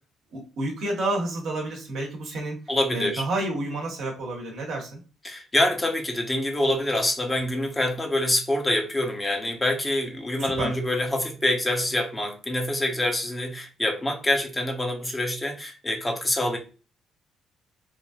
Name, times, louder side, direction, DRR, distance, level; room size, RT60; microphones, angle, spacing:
voice 1, 0.3-2.6 2.9-5.0 10.4-10.7, right 2 dB, 70° right, 0 dB, 1.2 m, -30 dB
voice 2, 2.7-3.2 5.2-16.6, left 1 dB, 20° left, 3 dB, 0.9 m, -26 dB
3.3 x 2.5 x 2.4 m, 0.34 s
hypercardioid pair, 55°, 0 cm